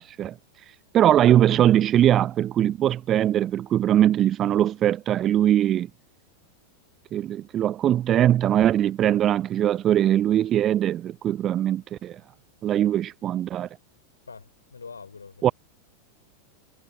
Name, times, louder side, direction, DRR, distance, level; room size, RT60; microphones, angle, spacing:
voice 1, 0.0-5.9 7.1-12.2 12.6-13.7 15.4-15.5, right 11 dB, 30° right, 0.3 m, -21 dB
voice 2, 14.3-15.5, left 5 dB, 75° left, 5.0 m, -44 dB
figure-of-eight pair, 90°, 0 cm